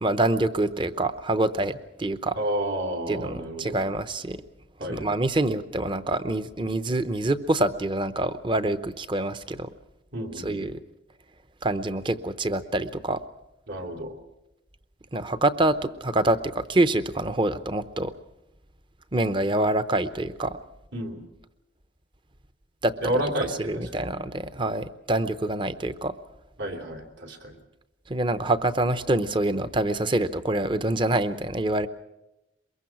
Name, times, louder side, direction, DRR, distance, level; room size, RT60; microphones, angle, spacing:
voice 1, 0.0-2.4 3.1-4.4 4.9-9.7 10.4-10.8 11.6-13.2 15.1-18.1 19.1-20.6 22.8-23.1 23.6-26.1 28.1-31.9, right 2 dB, 25° right, 12 dB, 0.8 m, -26 dB
voice 2, 2.4-3.8 4.8-5.1 10.1-10.7 13.7-14.1 20.9-21.2 23.0-24.1 24.5-24.7 26.6-27.5, right 1 dB, 70° right, 4 dB, 3.1 m, -31 dB
23.0 x 22.0 x 6.0 m, 0.94 s
head